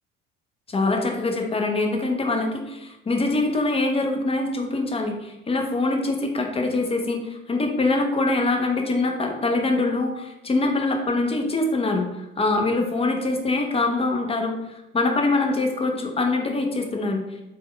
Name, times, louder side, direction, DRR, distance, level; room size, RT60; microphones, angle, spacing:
voice 1, 0.7-14.5 14.9-17.4, left 2 dB, 20° left, 2 dB, 0.6 m, -24 dB
3.4 x 2.2 x 3.3 m, 0.94 s
hypercardioid pair, 65°, 31 cm